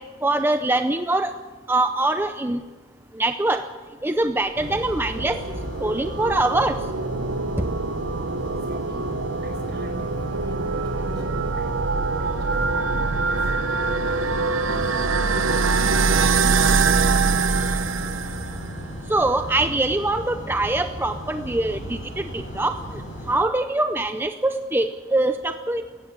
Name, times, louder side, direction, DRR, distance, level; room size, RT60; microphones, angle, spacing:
voice 1, 0.2-1.3 1.7-2.6 3.2-3.6 4.0-5.4 5.8-6.7 19.1-22.8 23.3-25.8, right 2 dB, 10° right, 8 dB, 0.5 m, -23 dB
sound 1, 4.5-23.3, equal, 35° left, 7.9 m, -36 dB
sound 2, 4.6-18.8, right 4 dB, 70° right, 0.9 m, -24 dB
voice 2, 8.5-13.6 14.0-17.9, equal, 55° right, 4 dB, 5.3 m, -42 dB
17.5 x 15.5 x 9.7 m, 1.4 s
head